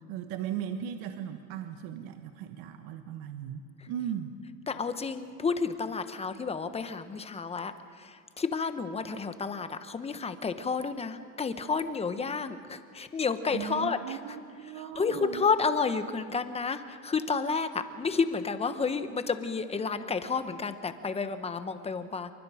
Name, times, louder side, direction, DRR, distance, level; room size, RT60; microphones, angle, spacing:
voice 1, 0.1-3.6 3.9-4.3 13.5-15.5, right 9 dB, 55° right, 6 dB, 1.5 m, -37 dB
voice 2, 4.7-14.2 14.9-22.3, left 5 dB, 15° left, 10 dB, 1.1 m, -31 dB
28.0 x 23.5 x 5.1 m, 2.4 s
supercardioid pair, 125°, 42 cm